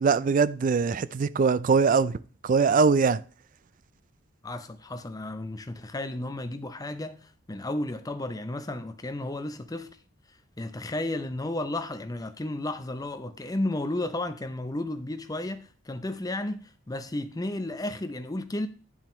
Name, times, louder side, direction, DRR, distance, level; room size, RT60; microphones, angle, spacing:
voice 1, 0.0-2.2 2.4-3.2, right 5 dB, 40° right, 0.3 m, -22 dB
voice 2, 4.4-9.9 10.6-18.7, left 1 dB, 20° left, 0.6 m, -33 dB
10.0 x 7.3 x 3.1 m
head